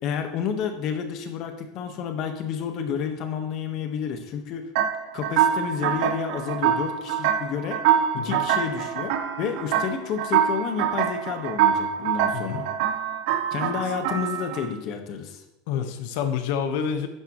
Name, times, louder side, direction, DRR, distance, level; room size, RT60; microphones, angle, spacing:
voice 1, 0.0-4.7 5.1-7.8 8.2-12.7 13.5-15.4, left 7 dB, 45° left, 6 dB, 1.5 m, -30 dB
sound 1, 4.7-14.7, right 9 dB, 65° right, 1.1 m, -25 dB
voice 2, 12.3-12.7 15.7-17.1, left 7 dB, 65° left, 7 dB, 1.3 m, -28 dB
12.5 x 9.6 x 3.2 m, 0.92 s
supercardioid pair, 155°, 0 cm